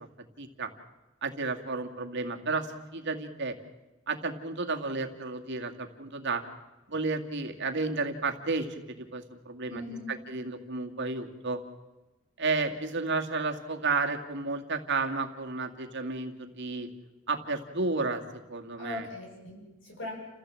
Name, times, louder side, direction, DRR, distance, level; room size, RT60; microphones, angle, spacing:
voice 1, 0.4-0.7 1.2-2.7 2.9-3.6 4.1-6.4 6.9-9.8 10.3-11.6 12.4-16.9 17.3-18.2 18.5-19.1, right 3 dB, 60° right, 4 dB, 2.2 m, -32 dB
voice 2, 9.7-10.1 18.8-20.1, left 2 dB, 65° left, 0 dB, 7.9 m, -39 dB
30.0 x 15.0 x 7.7 m, 1.1 s
head